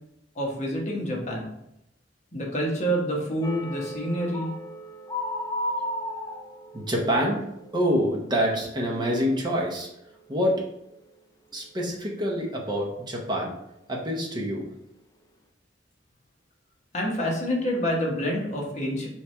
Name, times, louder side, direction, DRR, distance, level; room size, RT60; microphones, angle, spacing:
voice 1, 0.4-1.5 2.3-4.6 16.9-19.1, equal, 40° left, -2 dB, 1.0 m, -27 dB
sound 1, 3.4-9.2 9.5-9.8 10.2-10.4, left 1 dB, 20° left, 0.3 m, -35 dB
voice 2, 6.7-7.4 7.7-9.9 10.3-10.6 11.5-13.5 13.9-14.6, equal, 25° right, -1 dB, 0.7 m, -26 dB
3.4 x 3.2 x 4.2 m, 0.81 s
head